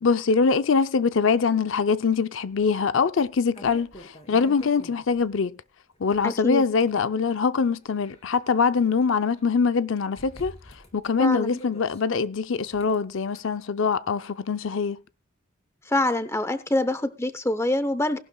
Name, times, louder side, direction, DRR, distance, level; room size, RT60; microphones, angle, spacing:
voice 1, 0.0-5.6 6.0-10.5 10.9-15.0, left 5 dB, 75° left, 0.5 m, -23 dB
sound 1, 2.6-2.7 3.2-5.3 6.0-7.0 7.6-9.0 9.4-9.5 10.2-12.0 12.6-13.4, equal, 30° left, 3.0 m, -47 dB
voice 2, 6.2-6.6 11.2-11.6 15.9-18.2, left 1 dB, 15° left, 0.7 m, -25 dB
18.5 x 12.0 x 2.3 m
head